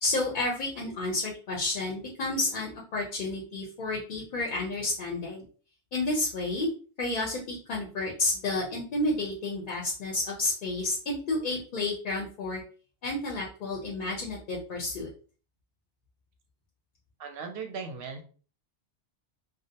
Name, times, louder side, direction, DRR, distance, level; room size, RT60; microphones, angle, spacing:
voice 1, 0.0-5.4 5.9-6.7 7.0-12.6 13.0-15.1, left 2 dB, 55° left, -1 dB, 0.6 m, -31 dB
voice 2, 17.2-18.2, right 5 dB, 65° right, 4 dB, 0.7 m, -37 dB
2.3 x 2.0 x 2.7 m, 0.39 s
omnidirectional pair, 1.1 m